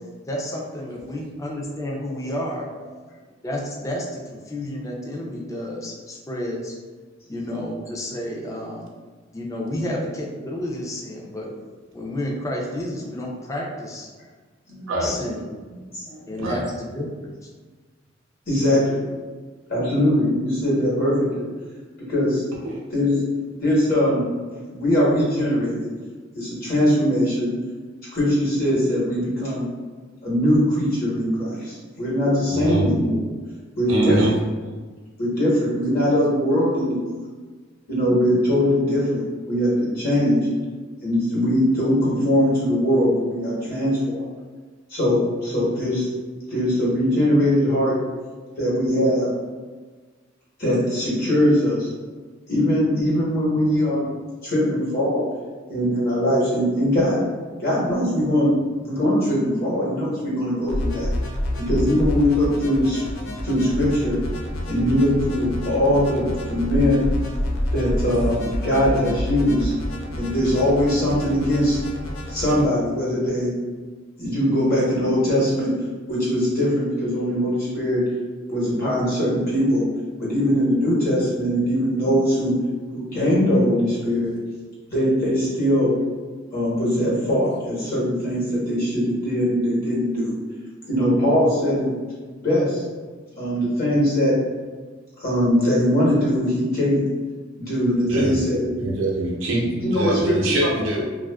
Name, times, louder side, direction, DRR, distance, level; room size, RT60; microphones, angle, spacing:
voice 1, 0.3-2.7 3.4-6.8 7.3-8.9 9.3-11.5 11.9-14.1 15.0-15.4 16.3-17.3, left 1 dB, 15° left, -2 dB, 0.4 m, -30 dB
voice 2, 15.9-16.3 18.5-19.0 19.7-21.5 22.1-22.4 22.9-23.2 23.6-24.3 24.7-25.9 26.3-27.5 28.1-29.7 30.2-33.2 33.8-34.2 35.2-37.0 37.9-39.2 39.5-40.4 41.0-44.3 44.9-46.1 46.5-47.9 48.6-49.3 50.6-51.9 52.5-54.1 54.4-55.3 55.7-57.2 57.6-58.5 58.8-61.1 61.6-63.0 63.4-64.2 64.7-67.1 67.7-69.7 70.2-71.8 72.3-73.6 74.2-75.7 76.1-78.1 78.5-79.9 80.2-82.5 82.9-84.3 84.9-86.0 86.5-90.3 90.9-91.9 92.4-92.8 93.4-94.4 95.2-97.0 97.6-98.7 99.8-100.5, equal, 50° left, -7 dB, 1.0 m, -21 dB
voice 3, 32.5-32.9 33.9-34.3 98.1-98.4 98.8-101.0, right 1 dB, 85° right, -2 dB, 0.6 m, -24 dB
sound 1, 60.7-72.7, equal, 85° left, 0.4 m, -28 dB
2.4 x 2.3 x 2.2 m, 1.4 s
head